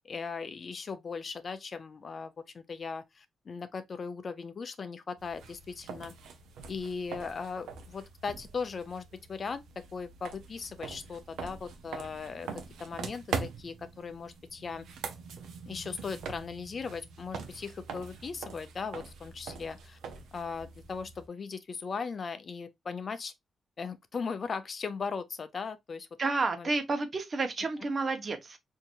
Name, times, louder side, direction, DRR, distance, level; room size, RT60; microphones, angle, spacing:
voice 1, 0.0-6.1 6.7-9.6 9.9-14.9 15.7-20.0 20.3-23.3 23.8-26.1 26.6-26.7, left 5 dB, 50° left, 0.6 m, -38 dB
sound 1, 5.2-21.3, right 5 dB, 85° right, 0.7 m, -43 dB
voice 2, 26.2-28.6, right 3 dB, 45° right, 1.0 m, -30 dB
4.5 x 2.8 x 2.5 m
cardioid pair, 65°, 0 cm